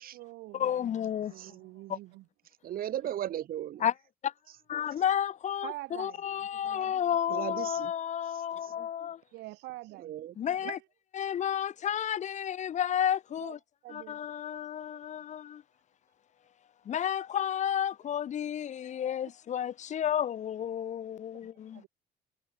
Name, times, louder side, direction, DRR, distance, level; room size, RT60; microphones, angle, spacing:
voice 1, 0.0-0.9 1.3-2.3 5.6-7.0 7.3-7.6 9.3-10.1 10.6-10.8 13.4-13.6 13.8-14.2 21.7-21.9, right 19 dB, 85° right, 7.0 m, -45 dB
voice 2, 0.5-1.3 1.9-2.0 3.8-3.9 4.2-4.3 4.7-5.7 6.0-9.2 10.4-10.8 11.2-13.6 13.9-15.6 16.9-21.8, left 9 dB, 45° left, 0.7 m, -31 dB
voice 3, 2.6-3.9 4.5-4.6 7.3-7.9 8.2-8.7 10.0-10.4, right 11 dB, 60° right, 2.2 m, -37 dB
cardioid pair, 110°, 17 cm